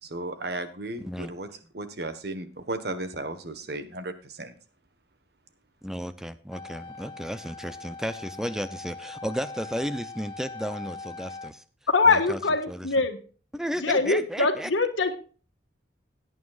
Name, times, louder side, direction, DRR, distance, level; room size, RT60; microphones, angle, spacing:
voice 1, 0.0-1.5 1.7-4.5, right 2 dB, 55° right, 9 dB, 1.3 m, -35 dB
voice 2, 1.0-1.3 5.8-11.6 12.1-12.4 12.7-12.9 13.5-14.7, equal, 5° right, 12 dB, 0.5 m, -33 dB
sound 1, 6.5-11.5, left 3 dB, 25° left, 1.2 m, -41 dB
voice 3, 11.9-13.2 13.8-15.2, left 3 dB, 90° left, 7 dB, 1.6 m, -23 dB
17.0 x 9.4 x 2.4 m, 0.39 s
head